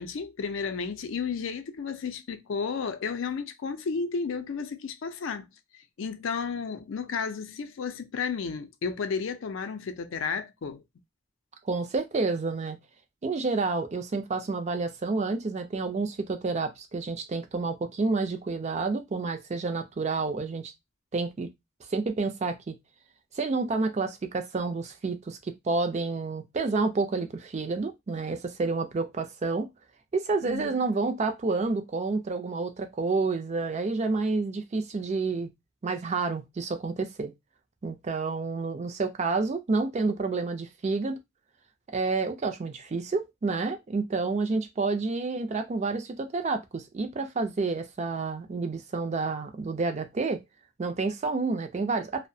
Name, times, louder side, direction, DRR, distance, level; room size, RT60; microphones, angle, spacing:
voice 1, 0.0-5.5 6.0-10.8 30.4-30.7, left 5 dB, 65° left, 0.4 m, -32 dB
voice 2, 11.6-12.8 13.2-20.7 21.1-21.5 21.9-22.7 23.4-29.7 30.1-35.5 35.8-37.3 37.8-41.2 41.9-50.4 50.8-52.3, right 3 dB, 35° right, 0.4 m, -29 dB
2.6 x 2.1 x 2.6 m
head